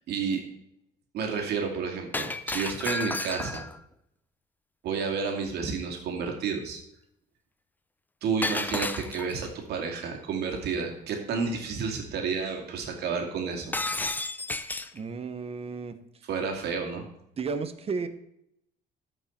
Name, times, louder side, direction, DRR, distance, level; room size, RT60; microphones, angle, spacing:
voice 1, 0.1-0.4 1.1-3.6 4.8-6.8 8.2-13.7 16.3-17.0, right 5 dB, 75° right, 2 dB, 2.4 m, -31 dB
Shatter, 2.1-3.8 8.4-9.5 13.7-15.0, left 2 dB, 10° left, 0.6 m, -32 dB
voice 2, 14.9-15.9 17.4-18.1, right 5 dB, 35° right, 10 dB, 1.1 m, -33 dB
14.0 x 5.5 x 4.4 m, 0.77 s
cardioid pair, 110°, 17 cm